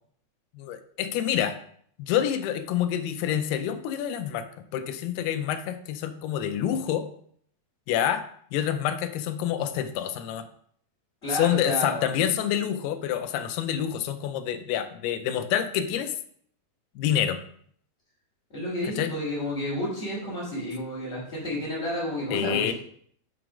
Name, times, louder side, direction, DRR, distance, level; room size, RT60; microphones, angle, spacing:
voice 1, 0.5-1.6 2.0-4.5 4.7-7.1 7.9-8.3 8.5-10.5 11.3-16.1 17.0-17.4 18.8-19.1 22.3-22.7, left 10 dB, 85° left, 9 dB, 2.6 m, -27 dB
voice 2, 11.2-12.2 18.5-22.7, left 1 dB, 20° left, -10 dB, 2.3 m, -31 dB
6.0 x 4.7 x 5.0 m, 0.63 s
omnidirectional pair, 4.6 m